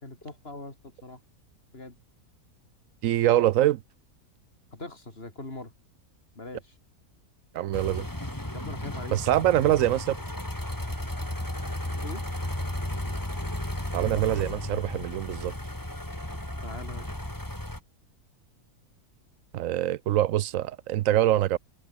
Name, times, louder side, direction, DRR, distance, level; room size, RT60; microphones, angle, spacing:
voice 1, 0.0-1.2 1.7-2.0 4.7-5.7 6.3-6.7 8.5-9.2 12.0-12.2 16.6-17.1, left 2 dB, 40° left, 4.4 m, -41 dB
voice 2, 3.0-3.8 7.5-8.1 9.1-10.2 13.9-15.5 19.5-21.6, right 13 dB, 70° right, 0.9 m, -24 dB
sound 1, 7.7-17.8, left 1 dB, 10° left, 3.5 m, -34 dB
omnidirectional pair, 1.6 m